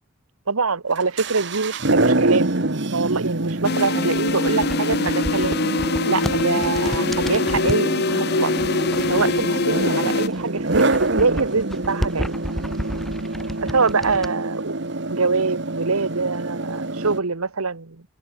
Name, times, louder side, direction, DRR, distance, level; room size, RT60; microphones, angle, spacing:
voice 1, 0.5-2.5 2.8-5.7 6.1-8.6 8.9-12.3 13.6-14.7 15.1-18.0, right 4 dB, 85° right, 1.3 m, -24 dB
sound 1, 0.9-17.2, right 2 dB, 55° right, 1.5 m, -26 dB
sound 2, 3.6-10.3, left 3 dB, 50° left, 0.9 m, -23 dB
sound 3, 4.1-7.9 8.6-9.9 10.2-14.3, equal, ahead, 3.1 m, -32 dB
open air
head